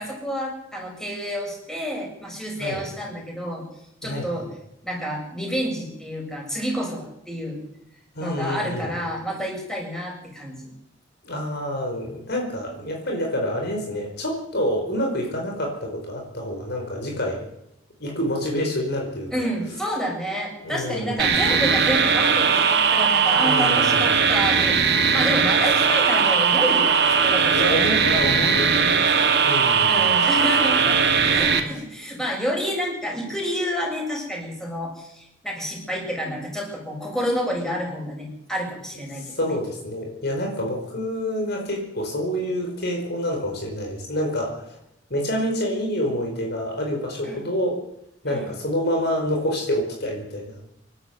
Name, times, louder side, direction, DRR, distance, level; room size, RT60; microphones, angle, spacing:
voice 1, 0.0-3.6 4.0-4.5 4.8-7.6 8.2-10.7 19.3-27.8 29.9-31.0 31.3-39.6 47.2-47.4 48.3-48.5, equal, 5° left, -2 dB, 7.3 m, -29 dB
voice 2, 8.1-8.9 11.2-17.4 18.0-19.5 20.6-21.3 23.4-24.1 27.5-29.1 29.4-30.0 30.8-31.3 39.1-44.8 45.1-47.8 48.2-50.7, equal, 55° left, 1 dB, 4.7 m, -27 dB
sound 1, 21.2-31.6, right 6 dB, 55° right, 2.4 m, -19 dB
27.0 x 12.0 x 8.1 m, 0.82 s
head